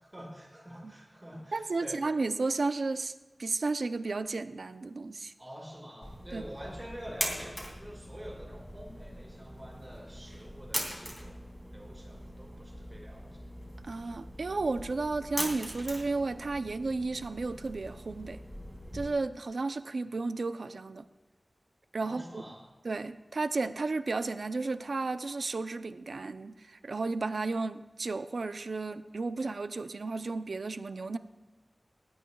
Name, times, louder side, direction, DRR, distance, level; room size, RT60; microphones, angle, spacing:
voice 1, 0.0-2.0 5.4-11.4 11.7-13.4 22.0-22.6, equal, 20° right, -4 dB, 5.2 m, -47 dB
voice 2, 1.5-3.1 3.4-5.3 6.3-6.4 13.8-18.4 18.9-21.1 21.9-22.4 22.8-31.2, right 3 dB, 80° right, 11 dB, 0.5 m, -33 dB
sound 1, 6.0-19.1, equal, 5° left, 2.5 m, -41 dB
19.5 x 16.5 x 2.3 m, 1.1 s
wide cardioid pair, 70°, 0 cm